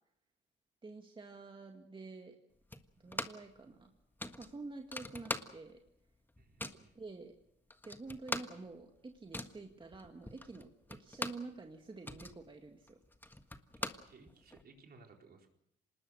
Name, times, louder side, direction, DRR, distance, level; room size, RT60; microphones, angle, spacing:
voice 1, 0.8-2.4 3.0-3.9 4.4-5.8 6.9-7.3 7.8-13.0, right 3 dB, 25° right, 3 dB, 2.0 m, -48 dB
sound 1, 2.7-3.5 3.8-3.9 4.2-5.9 6.2-6.9 7.4-7.5 7.7-11.5 11.9-14.6, left 1 dB, 10° left, 1.5 m, -43 dB
voice 2, 6.4-6.9 13.8-15.5, right 4 dB, 50° right, 2 dB, 4.3 m, -60 dB
26.0 x 20.0 x 6.4 m, 0.77 s
cardioid pair, 90°, 20 cm